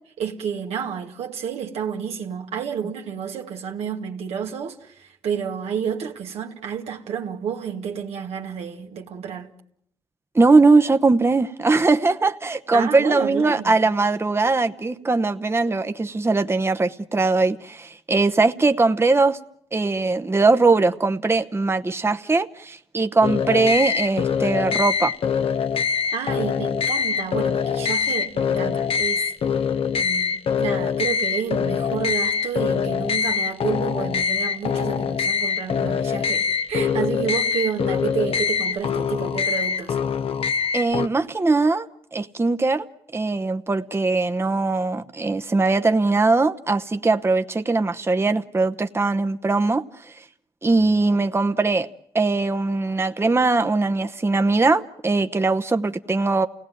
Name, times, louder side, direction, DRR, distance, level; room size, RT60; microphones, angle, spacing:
voice 1, 0.2-9.5 12.7-13.8 26.1-29.3 29.9-40.0, right 7 dB, 85° right, 1.8 m, -30 dB
voice 2, 10.3-19.4 19.7-25.1 40.7-41.9 42.1-42.9 43.1-49.8 50.6-51.9 52.1-56.5, right 3 dB, 25° right, 0.9 m, -20 dB
sound 1, 23.2-41.1, left 6 dB, 65° left, 0.9 m, -24 dB
28.5 x 17.5 x 9.2 m
supercardioid pair, 50°, 10 cm